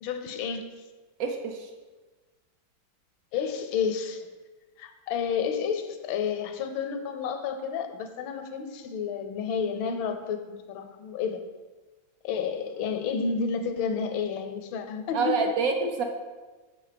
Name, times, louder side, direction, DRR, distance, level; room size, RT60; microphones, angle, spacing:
voice 1, 0.0-0.7 3.3-4.3 4.8-11.4 12.2-15.5, left 6 dB, 80° left, 7 dB, 1.4 m, -30 dB
voice 2, 1.2-1.7 15.1-16.0, right 4 dB, 65° right, 4 dB, 0.9 m, -26 dB
6.3 x 4.4 x 5.0 m, 1.3 s
omnidirectional pair, 2.2 m